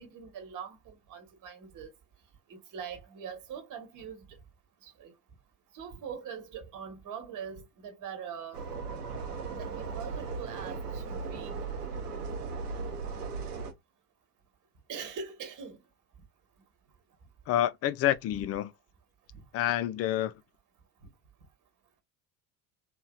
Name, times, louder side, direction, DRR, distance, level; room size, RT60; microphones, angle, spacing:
voice 1, 0.0-1.9 2.5-4.2 4.8-5.1 5.7-8.6 9.5-11.5 14.9-15.8, right 7 dB, 40° right, 1.2 m, -42 dB
sound 1, 8.5-13.7, right 4 dB, 85° right, 0.8 m, -37 dB
voice 2, 17.5-18.7 19.5-20.3, left 12 dB, 35° left, 0.4 m, -28 dB
2.9 x 2.7 x 2.3 m
figure-of-eight pair, 60°, 46 cm